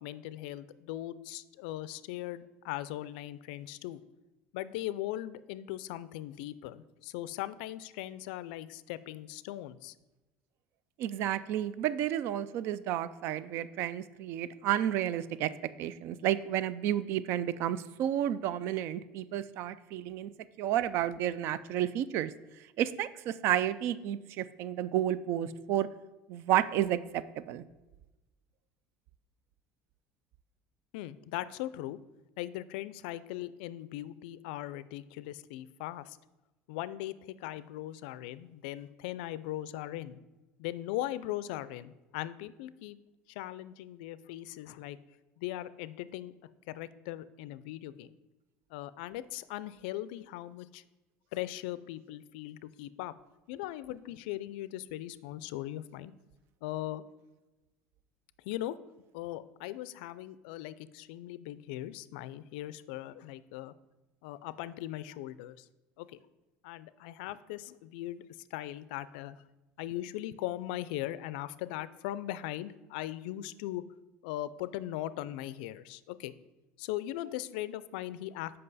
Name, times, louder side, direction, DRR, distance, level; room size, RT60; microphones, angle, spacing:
voice 1, 0.0-4.0 4.5-9.9 30.9-32.0 32.4-36.2 36.7-40.2 40.6-43.0 43.3-45.0 45.4-46.3 46.7-48.1 48.7-50.8 51.3-53.1 53.5-56.1 56.6-57.0 58.5-58.8 59.1-63.7 64.2-65.7 66.0-66.2 66.6-68.2 68.5-69.4 69.8-73.8 74.2-76.3 76.8-78.6, left 14 dB, 90° left, 16 dB, 0.3 m, -39 dB
voice 2, 11.0-15.5 15.8-20.3 20.6-22.3 22.8-25.9 26.3-27.6, right 11 dB, 55° right, 16 dB, 0.3 m, -31 dB
7.7 x 5.3 x 4.0 m, 1.1 s
cardioid pair, 145°, 5 cm